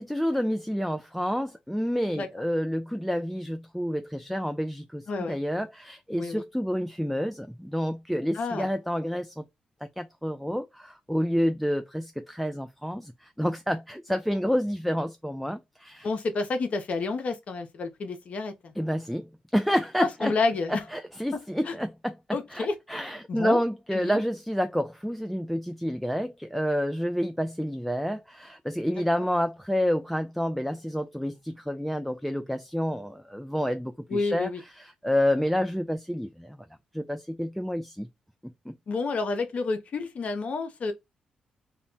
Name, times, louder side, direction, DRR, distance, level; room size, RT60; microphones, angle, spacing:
voice 1, 0.0-9.4 10.0-16.1 18.8-20.3 20.7-22.2 22.5-36.6 36.9-38.1 38.7-38.8, equal, ahead, 0.3 m, -29 dB
voice 2, 5.1-5.4 6.2-6.4 8.3-8.7 16.0-18.7 20.0-20.8 21.7-21.8 22.3-22.7 23.3-23.6 23.9-24.2 34.1-34.6 38.9-40.9, left 3 dB, 55° left, 0.5 m, -29 dB
2.1 x 2.1 x 3.8 m
cardioid pair, 65°, 3 cm